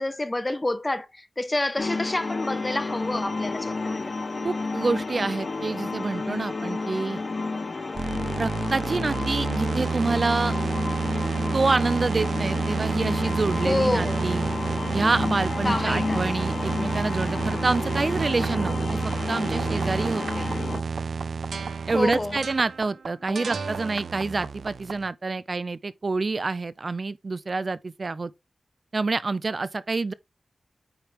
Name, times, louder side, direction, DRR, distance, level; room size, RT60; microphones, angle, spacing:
voice 1, 0.0-4.1 13.6-14.2 15.6-16.3 21.9-22.4 23.3-23.5, left 2 dB, 20° left, 1.0 m, -28 dB
sound 1, 1.8-20.8, left 3 dB, 50° left, 1.2 m, -31 dB
voice 2, 4.4-7.2 8.4-10.6 11.5-14.4 14.9-20.5 21.9-28.3 28.9-30.1, right 3 dB, 45° right, 0.5 m, -27 dB
sound 2, 7.9-25.1, right 5 dB, 90° right, 0.7 m, -29 dB
9.0 x 3.3 x 5.1 m
wide cardioid pair, 115°, 0 cm